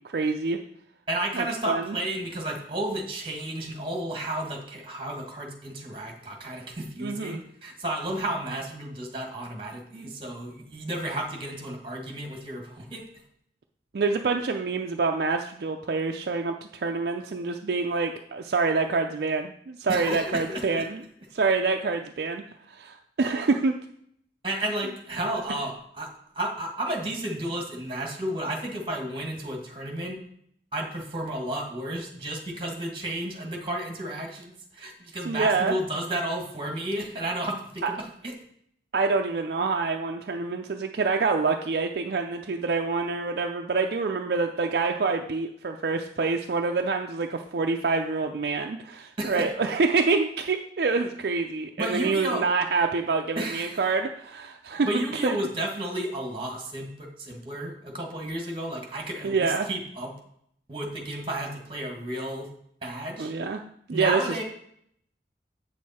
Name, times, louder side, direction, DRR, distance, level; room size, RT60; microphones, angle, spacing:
voice 1, 0.1-0.6 1.3-2.0 7.0-7.4 13.9-21.0 21.3-23.7 35.3-35.8 37.8-37.9 38.9-54.9 55.2-55.4 59.2-59.7 63.2-63.6 63.9-64.4, right 4 dB, 55° right, 4 dB, 0.4 m, -26 dB
voice 2, 1.1-13.1 19.9-20.8 24.4-26.1 26.3-30.2 30.7-38.3 49.2-49.5 51.8-52.4 53.3-53.8 54.7-60.1 60.7-62.5 62.8-63.3 63.9-64.4, right 1 dB, 30° right, 2 dB, 1.6 m, -32 dB
8.2 x 6.5 x 4.2 m, 0.69 s
head